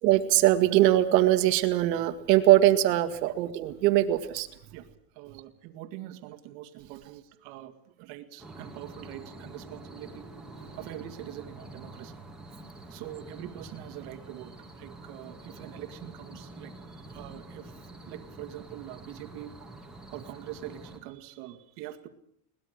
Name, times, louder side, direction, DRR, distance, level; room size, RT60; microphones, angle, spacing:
voice 1, 0.0-4.5, right 14 dB, 85° right, 8 dB, 2.2 m, -22 dB
voice 2, 5.1-10.2 10.8-12.1 12.9-19.5 20.1-22.1, right 13 dB, 50° right, 7 dB, 2.1 m, -44 dB
sound 1, 8.4-21.0, right 2 dB, ahead, 2.4 m, -46 dB
22.5 x 20.0 x 6.5 m, 0.69 s
supercardioid pair, 160°, 48 cm